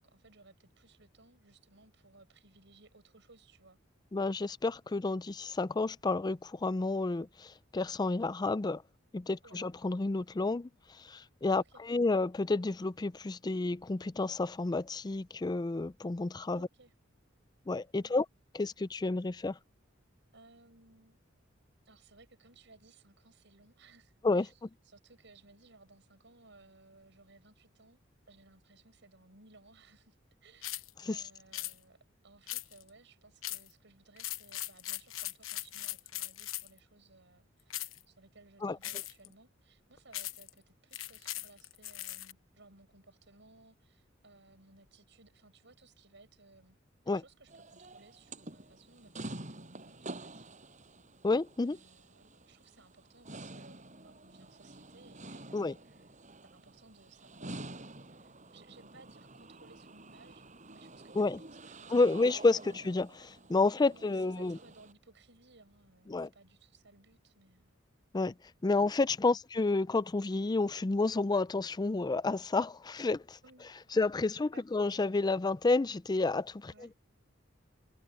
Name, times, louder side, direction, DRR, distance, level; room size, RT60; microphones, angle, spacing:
voice 1, 0.0-3.8 9.4-9.6 11.6-11.8 16.5-16.9 18.0-18.2 20.3-21.2 21.9-28.0 28.3-30.2 30.4-46.8 47.1-50.5 51.6-56.1 56.5-62.7 63.8-67.8 69.2-69.4 73.4-73.7 74.3-74.6 76.7-76.9, right 3 dB, 65° right, 7.1 m, -60 dB
voice 2, 4.1-8.8 9.1-10.7 11.1-16.7 17.7-18.3 18.5-19.6 24.2-24.7 31.1-31.2 38.6-38.8 47.1-47.2 51.2-51.8 55.5-55.7 61.2-61.4 61.9-64.6 66.1-66.3 68.1-68.3 68.6-73.4 74.0-76.7, left 3 dB, 20° left, 0.4 m, -30 dB
sound 1, 30.6-30.9 31.5-31.7 32.5-32.9 33.4-33.7 34.2-36.8 37.7-38.0 38.8-39.3 40.1-40.5 40.9-42.3, left 15 dB, 90° left, 1.0 m, -39 dB
sound 2, 47.5-64.9, right 2 dB, 40° right, 7.8 m, -49 dB
head